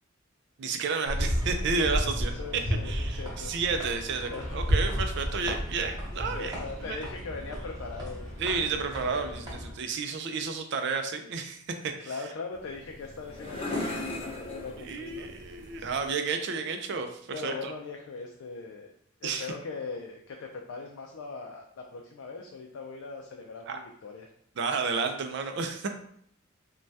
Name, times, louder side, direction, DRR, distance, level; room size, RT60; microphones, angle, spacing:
voice 1, 0.6-2.3 2.8-6.5 6.8-7.0 8.4-12.1 14.9-17.7 19.2-19.5 23.7-23.8 24.6-25.9, right 4 dB, 60° right, 6 dB, 0.4 m, -31 dB
sound 1, 1.1-9.7, equal, 20° right, 0.8 m, -32 dB
voice 2, 2.3-3.5 4.2-4.6 6.3-8.3 8.7-9.3 12.0-15.3 17.3-18.9 19.2-24.3, left 4 dB, 75° left, 1 dB, 0.4 m, -40 dB
sound 2, 12.5-16.1, left 2 dB, 25° left, 0.7 m, -38 dB
3.2 x 2.2 x 2.6 m, 0.66 s
head